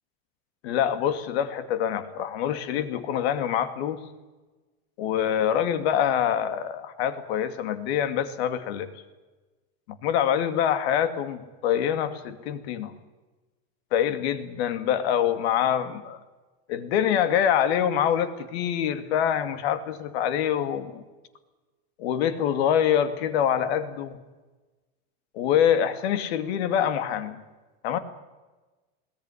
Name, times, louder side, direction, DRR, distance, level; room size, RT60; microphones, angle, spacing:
voice 1, 0.6-4.0 5.0-8.9 10.0-12.9 13.9-16.2 16.7-21.0 22.0-24.2 25.3-27.4 27.8-28.0, left 9 dB, 75° left, 11 dB, 2.4 m, -25 dB
21.0 x 18.0 x 9.9 m, 1.2 s
cardioid pair, 175°, 32 cm